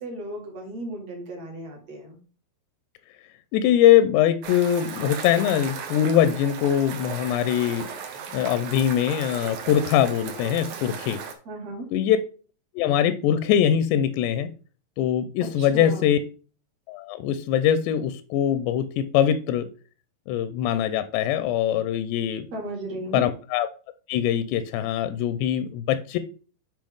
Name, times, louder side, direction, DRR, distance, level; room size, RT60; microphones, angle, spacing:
voice 1, 0.0-2.2 11.5-11.9 15.4-16.2 22.5-23.3, right 1 dB, 50° right, 0 dB, 2.2 m, -35 dB
voice 2, 3.5-7.9 8.3-11.2 11.9-12.2 12.8-14.5 15.0-16.2 16.9-19.7 20.3-22.5 23.1-23.7 24.1-26.2, left 10 dB, 90° left, 11 dB, 2.7 m, -22 dB
sound 1, 4.4-11.3, right 6 dB, 70° right, 2.0 m, -36 dB
7.6 x 5.0 x 3.5 m, 0.38 s
omnidirectional pair, 4.8 m